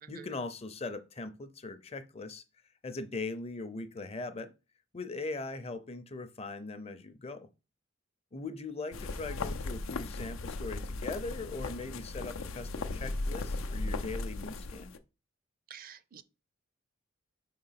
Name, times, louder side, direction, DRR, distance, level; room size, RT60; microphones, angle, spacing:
voice 1, 0.1-2.4 2.8-4.5 4.9-7.5 8.3-14.9, left 3 dB, 30° left, 0.6 m, -40 dB
sound 1, 8.9-15.0, left 2 dB, 85° left, 0.6 m, -37 dB
voice 2, 15.7-16.2, right 8 dB, 45° right, 0.5 m, -49 dB
4.9 x 3.9 x 5.7 m
head